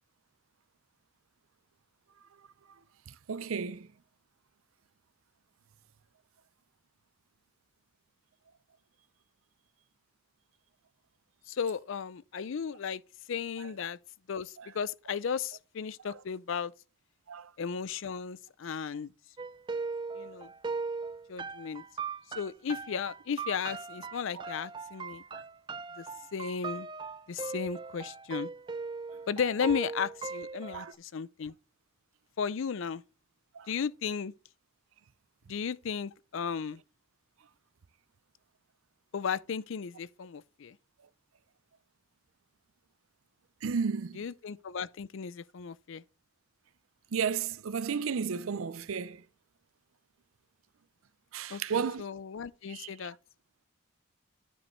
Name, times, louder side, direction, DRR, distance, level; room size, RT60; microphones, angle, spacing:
voice 1, 3.3-3.9 14.6-14.7 17.3-17.5 24.4-24.5 25.3-25.4 30.7-30.9 33.6-33.7 43.6-44.2 47.1-49.2 51.3-52.0 52.7-52.9, right 6 dB, 80° right, 0.5 m, -33 dB
voice 2, 11.5-13.0 13.3-14.0 14.3-16.7 17.6-19.1 20.1-20.5 21.3-21.8 22.4-25.2 26.0-26.1 26.3-26.9 27.3-28.5 29.3-31.5 32.4-33.0 33.7-34.3 35.5-36.8 39.1-40.8 44.1-46.0 51.5-53.2, left 6 dB, 65° left, 0.4 m, -35 dB
sound 1, 19.4-30.9, right 4 dB, 20° right, 0.3 m, -39 dB
9.9 x 5.3 x 3.1 m
head